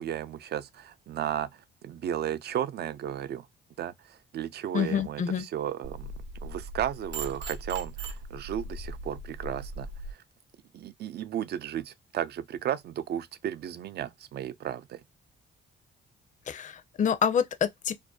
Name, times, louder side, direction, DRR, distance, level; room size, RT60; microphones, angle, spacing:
voice 1, 0.0-3.5 3.8-6.1 6.4-10.2 10.7-15.0, right 10 dB, 55° right, 0.4 m, -34 dB
voice 2, 4.7-5.4 16.5-17.9, left 7 dB, 40° left, 0.4 m, -27 dB
sound 1, 5.8-10.1, right 2 dB, 70° right, 0.8 m, -39 dB
2.5 x 2.1 x 2.2 m
cardioid pair, 90°, 20 cm